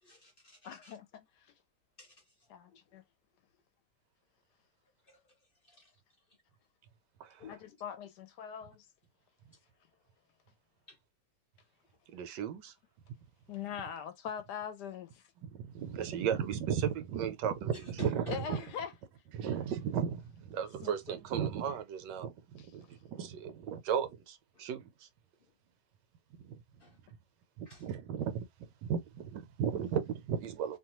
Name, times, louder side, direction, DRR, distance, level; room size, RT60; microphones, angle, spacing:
voice 1, 0.0-1.0 2.0-2.8 5.1-5.8 7.4-7.8 10.9-11.0 17.7-18.4 24.5-24.6 25.4-25.5 26.8-27.0 27.6-27.9, left 4 dB, 55° left, 0.6 m, -52 dB
voice 2, 0.6-1.5 2.5-3.0 7.5-8.9 13.5-15.3 18.3-18.9 20.8-21.0 22.6-22.7, left 8 dB, 75° left, 1.1 m, -42 dB
voice 3, 12.1-12.7 15.4-18.6 19.3-25.1 26.4-26.6 27.6-30.8, right 8 dB, 80° right, 1.2 m, -35 dB
2.9 x 2.2 x 2.9 m
omnidirectional pair, 1.9 m